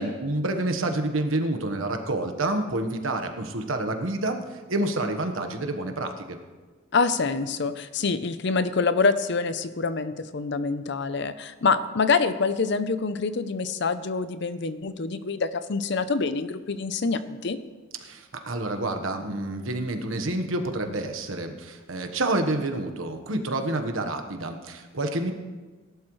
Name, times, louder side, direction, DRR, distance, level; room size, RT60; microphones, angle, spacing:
voice 1, 0.0-6.4 18.0-25.3, right 2 dB, 75° right, 6 dB, 1.3 m, -28 dB
voice 2, 6.9-17.6, left 4 dB, 55° left, 12 dB, 0.6 m, -26 dB
18.0 x 11.5 x 3.2 m, 1.3 s
head